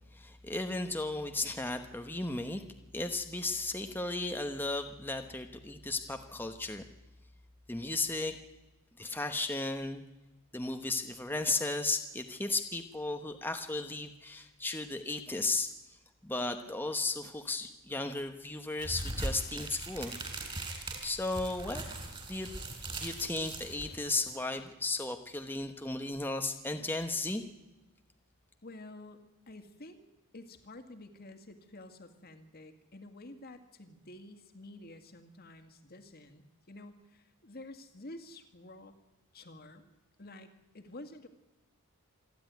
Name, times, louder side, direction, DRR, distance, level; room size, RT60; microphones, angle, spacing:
voice 1, 0.1-2.6 2.9-6.8 7.7-8.4 9.0-10.0 10.5-15.7 16.2-20.2 21.0-21.8 22.3-22.5 23.0-27.4, left 2 dB, 10° left, 6 dB, 1.0 m, -35 dB
sound 1, 18.8-24.3, right 2 dB, 25° right, 3.9 m, -40 dB
voice 2, 28.6-30.0 30.3-39.0 39.3-39.9 40.2-41.3, left 2 dB, 45° left, 7 dB, 2.0 m, -50 dB
27.0 x 11.5 x 9.4 m, 1.0 s
head